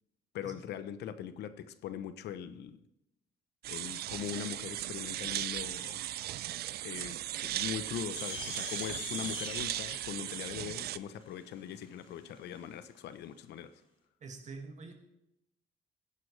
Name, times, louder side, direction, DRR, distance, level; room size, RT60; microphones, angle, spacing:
voice 1, 0.3-2.8 3.7-6.0 6.8-13.7, left 9 dB, 80° left, 12 dB, 0.8 m, -41 dB
sound 1, 3.6-11.0, right 14 dB, 70° right, 0.4 m, -37 dB
sound 2, 8.1-12.6, left 3 dB, 30° left, 4.7 m, -44 dB
voice 2, 14.2-14.9, right 4 dB, 45° right, 3 dB, 2.1 m, -45 dB
15.5 x 11.0 x 3.3 m, 0.86 s
cardioid pair, 115°, 17 cm